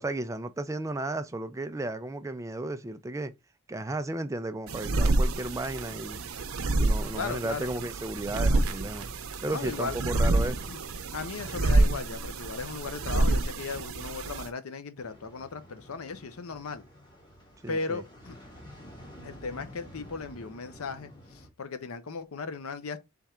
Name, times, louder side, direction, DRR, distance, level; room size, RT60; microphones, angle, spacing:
voice 1, 0.0-3.3 3.7-6.2 6.8-9.1 9.4-10.7 17.6-18.0, right 2 dB, 15° right, 0.3 m, -34 dB
sound 1, 4.7-14.5, right 2 dB, 85° right, 0.7 m, -28 dB
voice 2, 7.1-7.7 9.5-10.0 10.4-10.8 11.1-16.8 17.7-18.3 19.2-23.0, left 4 dB, 85° left, 0.7 m, -37 dB
sound 2, 15.0-21.5, equal, 20° left, 1.4 m, -50 dB
3.6 x 3.5 x 4.2 m
head